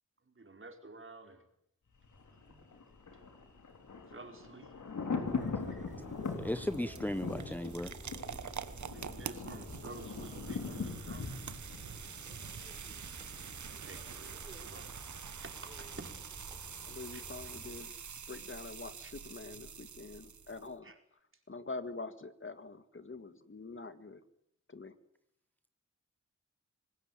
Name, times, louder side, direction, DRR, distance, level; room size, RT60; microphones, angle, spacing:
voice 1, 0.2-1.5 2.5-2.6 3.1-3.2 4.1-4.7 5.7-5.8 8.8-11.3 13.7-14.3 14.6-14.9 15.4-16.1 17.1-17.2 19.0-19.1 20.8-21.0, right 3 dB, 45° right, 5 dB, 4.4 m, -51 dB
Thunder, 2.0-12.9 13.2-13.3, left 4 dB, 85° left, 3.8 m, -41 dB
Chirp tweet, 5.3-17.8, right 1 dB, 25° right, 4.4 m, -52 dB
sound 1, 5.9-20.7, right 7 dB, 80° right, 1.3 m, -46 dB
voice 2, 6.4-7.9, left 1 dB, 5° left, 10 dB, 1.0 m, -35 dB
voice 3, 16.9-17.9 18.3-20.9 21.5-24.2 24.7-24.9, left 3 dB, 45° left, 11 dB, 1.8 m, -45 dB
25.0 x 19.5 x 9.2 m, 0.74 s
cardioid pair, 60°, 29 cm